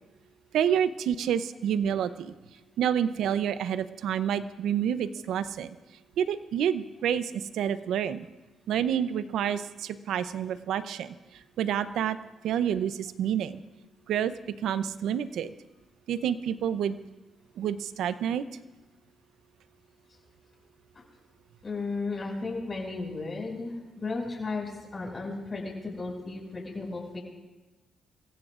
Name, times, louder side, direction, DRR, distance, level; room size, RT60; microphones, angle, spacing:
voice 1, 0.5-2.3 2.8-5.7 6.2-8.3 8.7-11.1 11.6-12.2 12.4-13.6 14.1-14.3 14.6-15.5 16.1-17.0 17.6-18.4, right 9 dB, 80° right, 13 dB, 0.6 m, -28 dB
voice 2, 21.6-27.2, left 3 dB, 35° left, -1 dB, 5.9 m, -34 dB
28.0 x 16.0 x 2.5 m, 1.1 s
cardioid pair, 70°, 0 cm